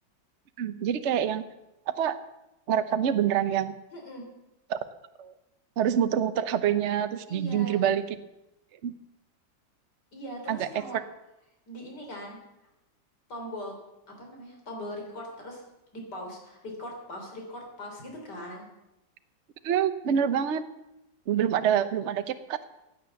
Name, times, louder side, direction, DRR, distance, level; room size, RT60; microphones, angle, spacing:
voice 1, 0.6-1.4 2.0-2.1 2.7-3.7 4.7-4.8 5.2-5.3 5.8-8.0 8.8-8.9 10.5-10.7 19.6-20.6 21.3-22.6, right 9 dB, 50° right, 10 dB, 0.9 m, -26 dB
voice 2, 3.9-4.2 7.3-7.8 10.1-11.0 11.7-12.4 13.3-13.8 14.2-15.6 15.9-18.7, equal, 60° left, 1 dB, 4.2 m, -40 dB
16.0 x 9.4 x 7.1 m, 0.94 s
omnidirectional pair, 2.1 m